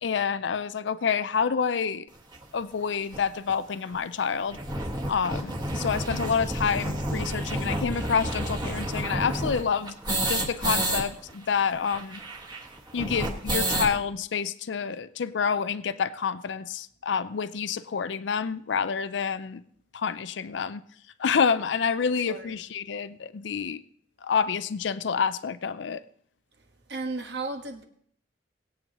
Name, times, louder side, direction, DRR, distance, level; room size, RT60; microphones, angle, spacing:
voice 1, 0.0-2.1 2.5-4.6 5.1-12.2 12.9-19.6 19.9-20.8 21.2-23.8 24.2-26.0, left 6 dB, 80° left, 0.5 m, -28 dB
sound 1, 2.3-2.4 3.1-3.2 3.5-3.6 3.9-4.0 4.3-11.0 11.3-11.4 11.6-14.0, right 1 dB, 25° right, 1.7 m, -30 dB
voice 2, 26.9-27.8, right 3 dB, 65° right, 1.4 m, -34 dB
21.0 x 8.6 x 3.0 m
head